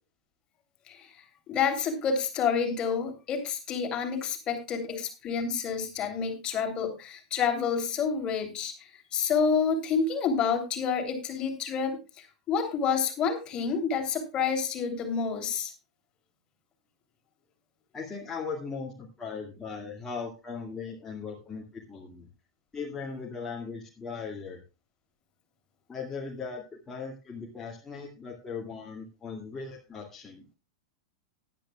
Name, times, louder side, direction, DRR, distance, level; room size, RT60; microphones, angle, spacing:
voice 1, 1.5-15.7, left 6 dB, 30° left, 6 dB, 3.1 m, -29 dB
voice 2, 17.9-22.3 22.7-24.6 25.9-30.5, left 5 dB, 15° left, -2 dB, 2.2 m, -38 dB
17.5 x 11.0 x 2.3 m, 0.29 s
figure-of-eight pair, 95°, 3 cm